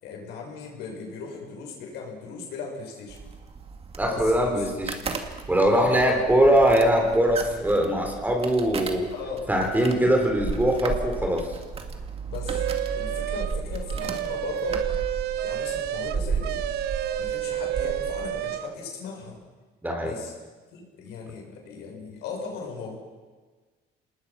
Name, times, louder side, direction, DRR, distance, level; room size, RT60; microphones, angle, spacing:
voice 1, 0.0-3.2 4.1-4.7 4.9-5.0 5.8-6.2 9.1-9.5 9.8-10.1 12.3-12.6 12.9-15.2 15.4-16.6 17.1-19.4 20.0-20.3 20.7-23.0, left 5 dB, 80° left, 0 dB, 6.4 m, -37 dB
sound 1, 3.1-18.4, right 5 dB, 35° right, 2.2 m, -34 dB
voice 2, 4.0-4.9 5.5-9.1 9.5-11.6 19.8-20.1, right 1 dB, 10° right, 2 dB, 4.1 m, -22 dB
sound 2, 12.5-13.6 13.9-18.7, right 12 dB, 75° right, 1.0 m, -30 dB
26.5 x 20.0 x 5.9 m, 1.4 s
cardioid pair, 110°, 17 cm